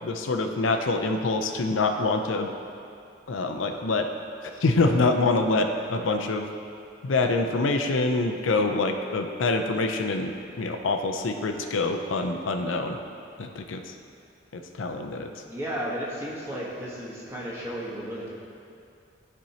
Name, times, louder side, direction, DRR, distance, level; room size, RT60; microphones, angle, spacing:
voice 1, 0.0-2.5 3.3-4.1 4.4-6.5 7.0-13.0 13.4-13.9 14.5-15.3, left 3 dB, 85° left, 4 dB, 0.5 m, -25 dB
voice 2, 15.5-18.3, equal, 15° right, -6 dB, 1.2 m, -33 dB
13.0 x 4.4 x 2.8 m, 2.5 s
head